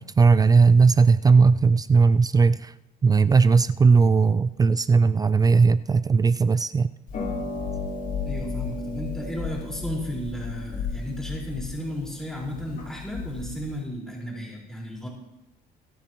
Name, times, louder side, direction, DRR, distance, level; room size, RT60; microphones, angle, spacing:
voice 1, 0.0-2.7 3.0-6.9, right 4 dB, 20° right, 15 dB, 0.3 m, -18 dB
Harp, 7.1-13.8, left 4 dB, 60° left, 5.3 m, -33 dB
voice 2, 8.2-15.1, equal, 5° left, -3 dB, 4.7 m, -34 dB
24.5 x 9.2 x 3.1 m, 0.89 s
cardioid pair, 110°, 17 cm